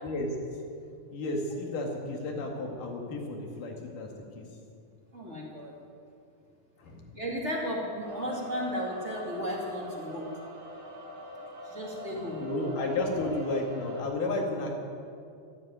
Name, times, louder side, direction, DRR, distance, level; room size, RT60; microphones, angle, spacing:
voice 1, 1.1-4.1 4.4-4.5 6.8-7.1 12.1-14.7, left 2 dB, 80° left, 1 dB, 3.7 m, -32 dB
voice 2, 5.1-5.7 7.1-10.3 11.7-12.4, equal, 25° right, -2 dB, 2.4 m, -34 dB
sound 1, 8.0-14.0, left 1 dB, 40° right, 2.9 m, -42 dB
13.0 x 12.5 x 9.1 m, 2.4 s
omnidirectional pair, 3.7 m